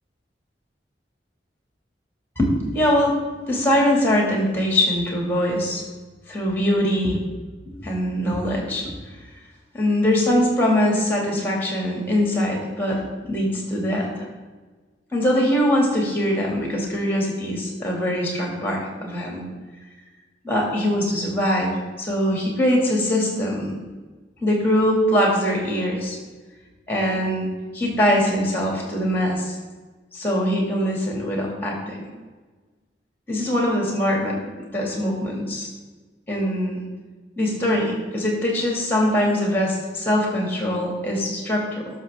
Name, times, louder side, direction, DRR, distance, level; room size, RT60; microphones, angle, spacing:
voice 1, 2.4-3.2 3.5-5.8 6.3-7.2 7.7-8.9 9.7-14.2 15.1-19.4 20.4-21.7 22.0-23.7 24.4-26.2 26.9-27.5 27.7-29.5 30.1-32.0 33.3-34.4 34.7-35.7 36.3-36.8 37.4-41.9, equal, 10° left, -1 dB, 2.3 m, -22 dB
12.5 x 6.4 x 3.6 m, 1.3 s
head